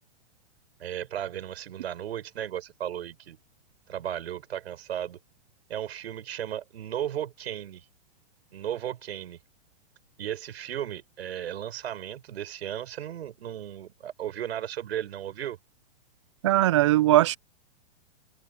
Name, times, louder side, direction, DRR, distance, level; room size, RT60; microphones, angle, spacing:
voice 1, 0.8-3.4 3.9-5.2 5.7-7.8 8.5-9.4 10.2-15.6, right 10 dB, 70° right, 7.0 m, -35 dB
voice 2, 16.4-17.4, right 15 dB, 30° right, 0.4 m, -20 dB
open air
hypercardioid pair, 160°, 32 cm